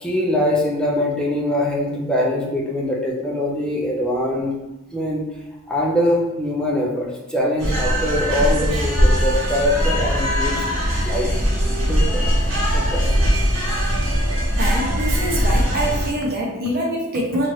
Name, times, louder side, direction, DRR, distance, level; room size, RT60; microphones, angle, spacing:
voice 1, 0.0-4.5 4.9-5.2 5.7-10.6 11.0-11.3 11.9-12.3 12.7-13.1, left 1 dB, 5° left, -3 dB, 0.5 m, -22 dB
sound 1, 7.6-16.1, equal, 70° right, 1.0 m, -20 dB
voice 2, 14.6-17.5, right 1 dB, 50° right, -2 dB, 0.7 m, -24 dB
3.0 x 2.5 x 3.0 m, 0.99 s
head